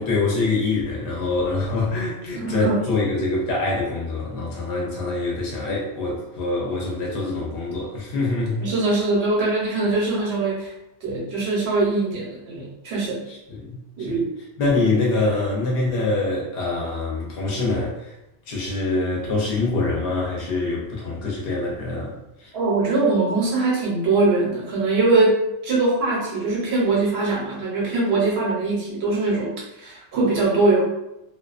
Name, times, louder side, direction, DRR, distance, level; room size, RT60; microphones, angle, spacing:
voice 1, 0.0-8.6 13.3-14.2 14.6-18.1 18.5-22.1 22.4-22.5, left 3 dB, 60° left, -3 dB, 0.8 m, -25 dB
voice 2, 2.3-2.9 8.6-10.7 11.0-13.2 14.0-14.2 22.5-29.5 29.8-30.8, right 3 dB, 65° right, -4 dB, 1.0 m, -22 dB
2.4 x 2.2 x 2.4 m, 0.86 s
omnidirectional pair, 1.2 m